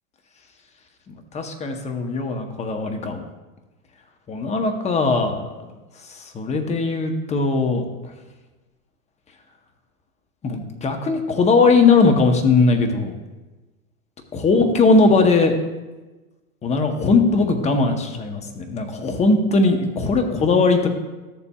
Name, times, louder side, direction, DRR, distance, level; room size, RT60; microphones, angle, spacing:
voice 1, 1.1-3.2 4.3-5.7 6.1-7.8 10.4-13.1 14.4-15.6 16.6-20.9, left 3 dB, 15° left, 5 dB, 0.8 m, -19 dB
13.0 x 7.1 x 2.3 m, 1.2 s
hypercardioid pair, 125°, 45 cm